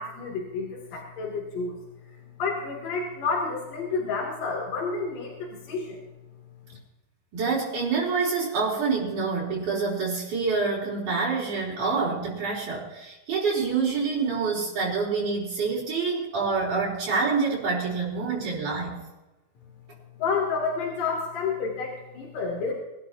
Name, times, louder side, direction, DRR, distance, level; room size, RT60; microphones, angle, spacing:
voice 1, 0.0-1.7 2.4-6.0 20.2-22.7, left 4 dB, 80° left, -2 dB, 4.5 m, -30 dB
voice 2, 7.3-19.0, right 4 dB, 70° right, -5 dB, 5.4 m, -27 dB
24.5 x 12.5 x 2.9 m, 1.0 s
omnidirectional pair, 3.8 m